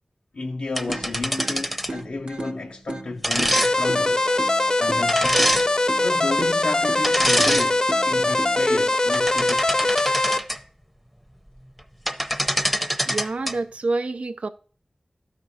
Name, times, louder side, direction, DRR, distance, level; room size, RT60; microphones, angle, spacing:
voice 1, 0.3-4.2 4.8-5.6 6.0-10.0, left 3 dB, 90° left, 0.5 m, -32 dB
sound 1, 0.8-2.0 3.2-3.7 5.1-5.7 7.0-7.7 8.2-8.4 9.0-10.6 11.8-11.9 12.1-13.5, equal, ahead, 0.7 m, -24 dB
sound 2, 0.9-8.9, right 2 dB, 60° right, 0.8 m, -37 dB
sound 3, 3.5-10.4, left 2 dB, 35° left, 0.4 m, -22 dB
voice 2, 13.1-14.5, right 3 dB, 80° right, 0.4 m, -27 dB
12.5 x 5.1 x 2.7 m
wide cardioid pair, 45°, 2 cm